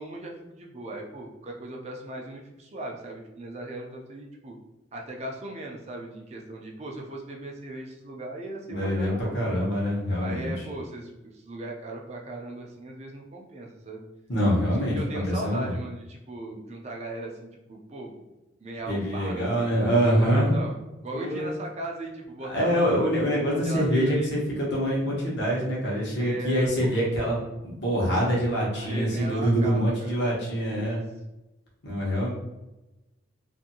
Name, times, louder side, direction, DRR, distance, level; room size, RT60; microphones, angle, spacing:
voice 1, 0.0-4.5 4.9-9.5 10.2-14.0 14.8-18.3 18.6-20.8 21.0-23.1 23.5-24.3 26.2-27.0 28.7-30.3 30.8-31.0, right 2 dB, 35° right, 0 dB, 0.4 m, -38 dB
voice 2, 8.7-10.5 14.3-15.7 18.9-20.5 21.1-21.5 22.5-27.4 27.6-31.0 31.8-32.3, equal, 60° left, -4 dB, 1.0 m, -25 dB
2.6 x 2.6 x 2.7 m, 1.0 s
head